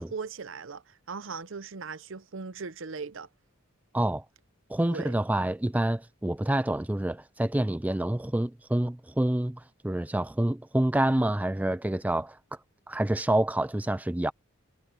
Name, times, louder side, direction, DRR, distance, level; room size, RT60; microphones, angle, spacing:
voice 1, 0.0-3.3 4.8-5.1, right 4 dB, 65° right, 0.7 m, -39 dB
voice 2, 3.9-4.2 4.7-12.4 12.9-14.3, right 1 dB, 5° right, 0.4 m, -27 dB
head